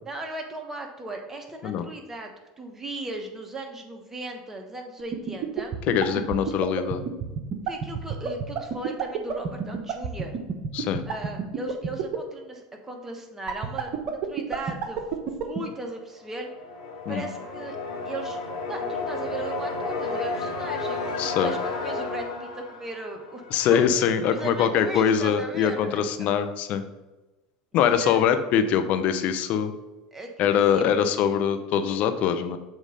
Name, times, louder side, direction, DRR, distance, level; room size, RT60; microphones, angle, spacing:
voice 1, 0.0-2.3 2.6-5.7 6.4-6.5 7.7-10.4 11.1-15.0 15.4-16.5 17.1-17.8 18.0-18.4 18.7-23.4 23.7-23.8 24.3-26.0 27.7-28.3 30.1-31.2, right 2 dB, 15° right, 3 dB, 1.2 m, -37 dB
sound 1, 5.0-12.2 13.5-15.6, right 8 dB, 50° right, 0.9 m, -27 dB
voice 2, 5.9-7.0 10.7-11.0 17.1-17.3 21.2-21.5 23.5-26.8 27.7-29.7 30.4-32.6, left 8 dB, 55° left, 9 dB, 0.7 m, -23 dB
sound 2, 16.2-23.9, left 3 dB, 90° left, 1.3 m, -32 dB
7.5 x 3.1 x 5.2 m, 1.1 s
hypercardioid pair, 90°, 3 cm